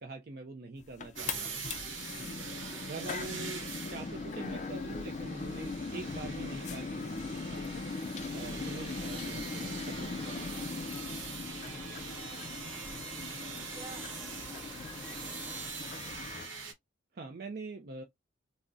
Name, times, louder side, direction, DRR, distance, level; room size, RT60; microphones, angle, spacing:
voice 1, 0.0-1.6 2.2-7.8 8.3-10.6 17.1-18.0, right 3 dB, 50° right, 0.5 m, -45 dB
sound 1, 0.8-16.5, left 4 dB, 40° left, 0.3 m, -40 dB
sound 2, 1.1-16.7, right 5 dB, 80° right, 0.9 m, -43 dB
sound 3, 10.0-15.7, left 2 dB, 5° left, 1.9 m, -52 dB
voice 2, 13.4-16.1, right 2 dB, 25° right, 1.6 m, -55 dB
3.6 x 2.1 x 2.5 m
head